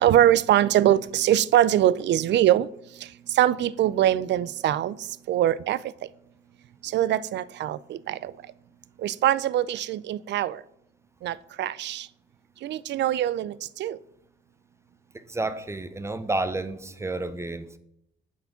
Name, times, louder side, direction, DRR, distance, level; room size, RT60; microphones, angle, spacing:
voice 1, 0.0-2.7 3.4-4.9 5.3-5.8 6.9-8.3 9.0-10.6 11.2-12.1 12.6-13.5 13.8-14.0, right 12 dB, 60° right, 0.4 m, -22 dB
voice 2, 15.1-17.8, right 2 dB, 15° right, 0.6 m, -30 dB
8.1 x 4.7 x 5.7 m
cardioid pair, 90°, 20 cm